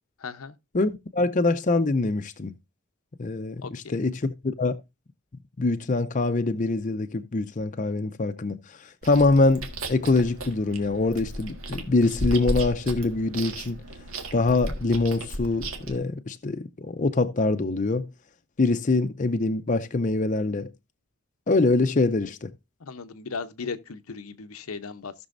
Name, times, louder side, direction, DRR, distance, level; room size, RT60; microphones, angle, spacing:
voice 1, 0.2-0.5 3.6-4.0 22.8-25.1, left 5 dB, 85° left, 0.8 m, -36 dB
voice 2, 0.7-2.5 3.2-4.7 5.6-13.8 14.3-18.1 18.6-20.7 21.5-22.5, left 3 dB, 35° left, 0.5 m, -24 dB
Chewing mastication, 9.0-16.0, equal, 75° right, 1.7 m, -34 dB
16.5 x 6.2 x 2.5 m
head